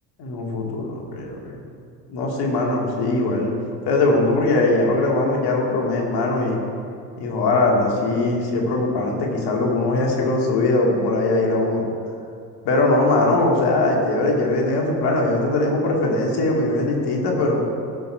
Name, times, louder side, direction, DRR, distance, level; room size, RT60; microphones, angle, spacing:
voice 1, 0.2-1.6 2.1-3.5 3.9-6.6 7.2-11.9 12.6-17.6, left 2 dB, 55° left, -1 dB, 2.3 m, -21 dB
16.0 x 5.5 x 4.5 m, 2.4 s
figure-of-eight pair, 55°, 48 cm